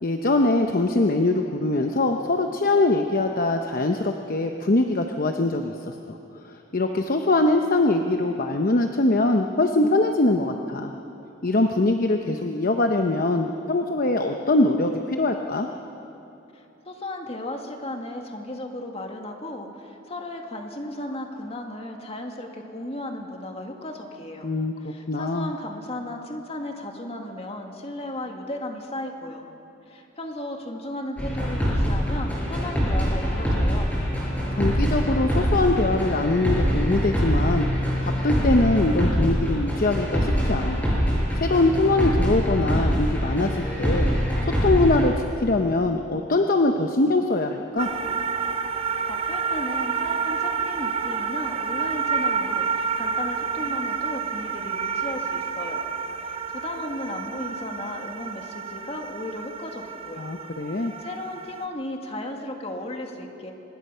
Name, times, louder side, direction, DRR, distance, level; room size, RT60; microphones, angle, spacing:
voice 1, 0.0-5.7 6.1-6.2 6.4-10.9 11.4-15.7 24.4-24.7 25.1-25.5 34.6-37.7 38.0-40.9 41.4-44.1 44.4-47.9 60.2-60.9, left 2 dB, 45° left, 4 dB, 0.8 m, -22 dB
voice 2, 16.5-24.5 24.8-29.4 29.9-33.9 49.0-55.9 56.2-60.3 60.8-63.5, left 1 dB, 30° left, 2 dB, 2.0 m, -35 dB
sound 1, 31.2-45.1, equal, 10° left, 6.4 m, -24 dB
sound 2, 47.8-61.6, right 6 dB, 30° right, 0.7 m, -29 dB
25.0 x 20.0 x 5.6 m, 2.9 s
head